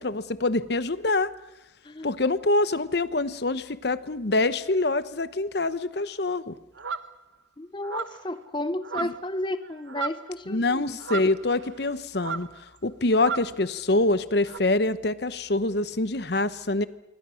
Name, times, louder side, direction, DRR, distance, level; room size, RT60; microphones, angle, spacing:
voice 1, 0.0-1.3 2.0-6.5 9.0-9.1 10.5-12.5 12.8-16.9, left 2 dB, 55° left, 14 dB, 0.9 m, -25 dB
voice 2, 1.8-2.2 7.6-11.0, left 1 dB, 25° left, 12 dB, 0.7 m, -33 dB
sound 1, 6.7-7.1 7.8-8.3 8.8-9.3 9.6-10.3 11.0-11.9 12.1-12.6 13.2-13.5 14.5-14.6, right 6 dB, 75° right, 1.1 m, -34 dB
26.5 x 24.0 x 6.4 m, 0.96 s
head